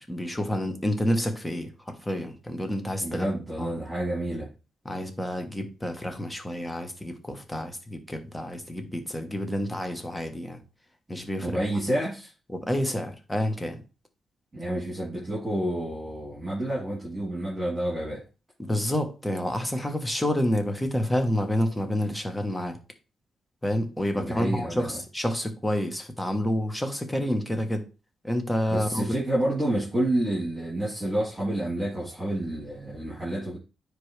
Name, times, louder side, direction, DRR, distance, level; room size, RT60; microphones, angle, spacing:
voice 1, 0.1-3.3 3.6-3.7 4.8-10.6 11.1-11.6 12.5-13.8 18.6-22.8 23.6-27.9 28.2-29.1, left 1 dB, 10° left, 1.1 m, -29 dB
voice 2, 3.0-4.5 11.4-12.3 14.5-18.2 24.1-25.0 28.7-33.6, right 1 dB, 15° right, 3.1 m, -29 dB
9.5 x 3.2 x 3.3 m
cardioid pair, 120°, 0 cm